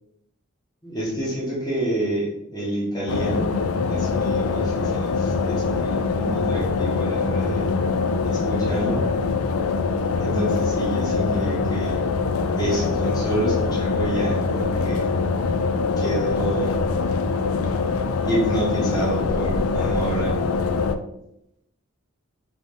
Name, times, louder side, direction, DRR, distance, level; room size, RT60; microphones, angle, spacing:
voice 1, 0.8-3.6 3.9-7.7 8.2-9.0 10.2-12.1 12.6-15.1 16.0-16.8 18.2-20.4, right 1 dB, 20° left, -7 dB, 1.2 m, -28 dB
sound 1, 3.1-20.9, left 4 dB, 80° left, 0.4 m, -23 dB
3.7 x 3.7 x 3.7 m, 0.81 s
head